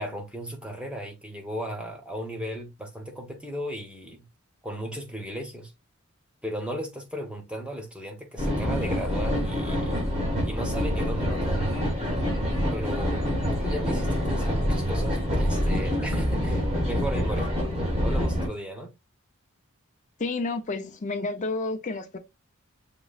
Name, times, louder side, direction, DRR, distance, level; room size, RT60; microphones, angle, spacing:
voice 1, 0.0-4.3 4.6-5.7 6.4-10.0 10.4-11.9 12.7-13.2 13.5-17.5 18.0-18.9, equal, 5° right, 1.1 m, -36 dB
sound 1, 8.4-18.5, equal, 35° right, 2.9 m, -26 dB
voice 2, 20.2-22.2, left 3 dB, 35° left, 0.6 m, -30 dB
6.9 x 3.0 x 2.4 m
head